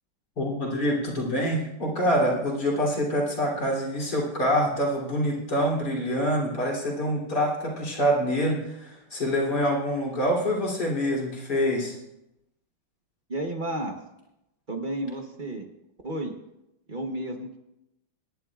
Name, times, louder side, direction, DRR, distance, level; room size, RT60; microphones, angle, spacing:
voice 1, 0.4-12.0, equal, 55° left, -4 dB, 3.8 m, -26 dB
voice 2, 13.3-13.9 14.7-15.7 16.0-16.4 16.9-17.6, right 1 dB, 35° right, 3 dB, 0.8 m, -32 dB
26.0 x 10.5 x 2.4 m, 0.88 s
omnidirectional pair, 2.2 m